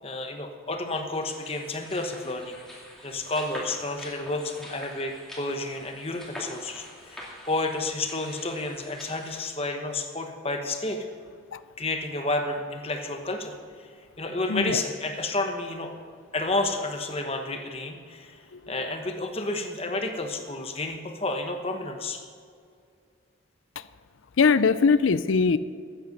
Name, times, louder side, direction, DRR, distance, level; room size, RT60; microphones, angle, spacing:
voice 1, 0.0-2.6 3.0-7.2 7.5-11.0 11.8-13.5 14.2-15.9 16.3-18.4 18.7-22.2, left 2 dB, 30° left, 4 dB, 1.1 m, -30 dB
sound 1, 1.2-9.5, left 1 dB, ahead, 2.2 m, -45 dB
voice 2, 24.4-25.6, left 5 dB, 75° left, 15 dB, 0.5 m, -20 dB
13.0 x 9.1 x 5.4 m, 2.2 s
head